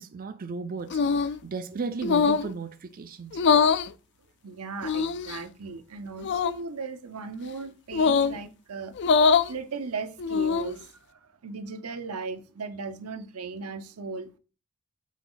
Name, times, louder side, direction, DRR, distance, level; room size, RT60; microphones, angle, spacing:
voice 1, 0.0-3.4, right 4 dB, 40° right, 0.4 m, -35 dB
sound 1, 0.9-1.4 2.0-2.5 3.3-3.9 4.8-5.4 6.2-6.6 7.9-8.4 9.0-9.5 10.2-10.8, left 5 dB, 50° left, 0.4 m, -23 dB
voice 2, 4.4-8.9 9.5-14.3, right 4 dB, 80° right, 0.8 m, -37 dB
7.4 x 4.0 x 3.9 m
head